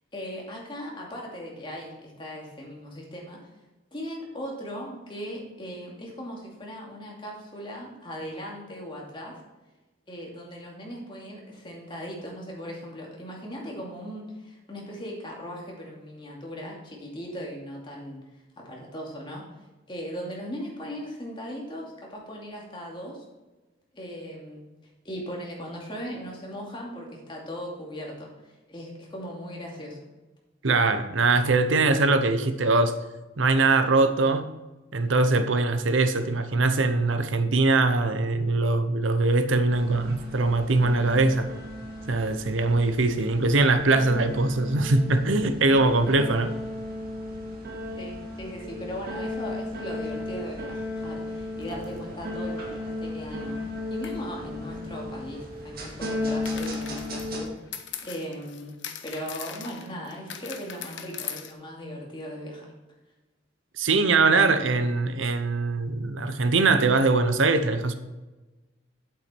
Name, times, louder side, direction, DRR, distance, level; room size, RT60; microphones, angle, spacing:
voice 1, 0.1-3.5 3.9-9.4 10.1-18.2 18.6-19.5 19.9-23.2 23.9-24.7 25.0-28.3 28.7-30.0 48.0-53.6 53.9-62.7, equal, 25° left, -2 dB, 2.5 m, -38 dB
voice 2, 30.6-33.0 33.4-34.5 34.9-41.5 42.1-46.5 63.8-67.9, right 3 dB, 80° right, 10 dB, 0.8 m, -22 dB
sound 1, 39.7-57.4, left 2 dB, 50° right, 2.1 m, -35 dB
sound 2, 51.6-52.0 54.0-54.2 56.4-61.5, left 9 dB, 70° left, 1.0 m, -40 dB
8.9 x 8.1 x 4.5 m, 1.1 s
head